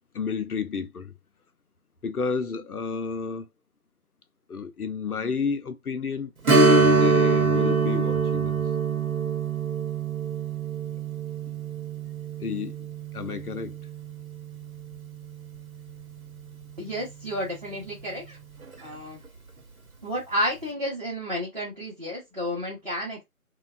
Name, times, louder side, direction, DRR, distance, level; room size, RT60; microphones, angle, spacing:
voice 1, 0.1-1.1 2.0-3.5 4.5-6.3 6.6-8.5 12.4-12.9 13.1-13.8, left 5 dB, 80° left, 0.6 m, -31 dB
Strum, 6.5-15.7 16.0-16.1 18.6-18.8 19.2-19.3, right 4 dB, 70° right, 0.9 m, -24 dB
voice 2, 16.8-18.4 18.8-19.2 20.0-23.2, equal, 30° right, 0.8 m, -31 dB
2.5 x 2.3 x 2.2 m
figure-of-eight pair, 165°, 44 cm